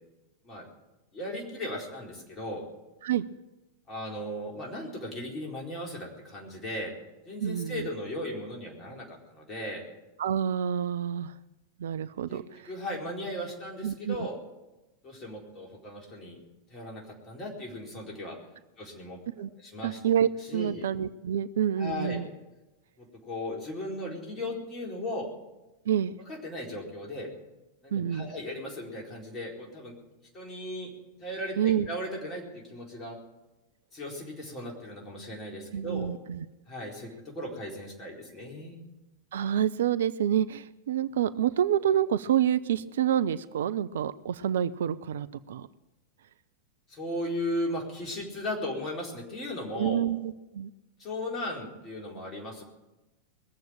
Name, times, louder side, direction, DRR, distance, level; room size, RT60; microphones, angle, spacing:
voice 1, 1.1-2.6 3.9-6.9 7.3-9.8 12.3-14.4 15.0-16.4 16.7-18.4 18.8-19.2 19.6-20.0 20.5-20.9 21.8-22.2 23.0-25.3 26.3-27.3 27.8-29.9 30.3-30.9 31.2-33.2 33.9-36.1 36.7-38.8 46.9-50.1 51.0-52.6, left 1 dB, 25° left, -1 dB, 4.3 m, -37 dB
voice 2, 7.4-7.9 10.2-11.3 11.8-12.7 13.8-14.3 19.4-19.5 19.8-22.3 25.9-26.2 27.9-28.3 31.6-31.9 35.7-36.5 39.3-45.7 49.7-50.7, right 9 dB, 60° right, 15 dB, 0.5 m, -28 dB
21.0 x 7.6 x 8.8 m, 1.0 s
figure-of-eight pair, 90°, 0 cm